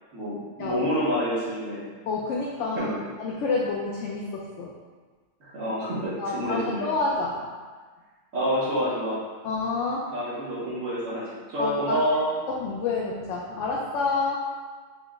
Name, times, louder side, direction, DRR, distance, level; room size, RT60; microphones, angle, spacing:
voice 1, 0.1-1.9 2.7-3.0 5.4-6.9 8.3-9.2 10.1-12.3, equal, 75° right, -10 dB, 1.5 m, -28 dB
voice 2, 2.1-2.9 3.2-4.7 6.2-7.4 9.4-10.1 11.6-12.0 12.5-14.4, left 3 dB, 70° left, -3 dB, 0.9 m, -28 dB
5.8 x 2.1 x 3.5 m, 1.4 s
omnidirectional pair, 1.4 m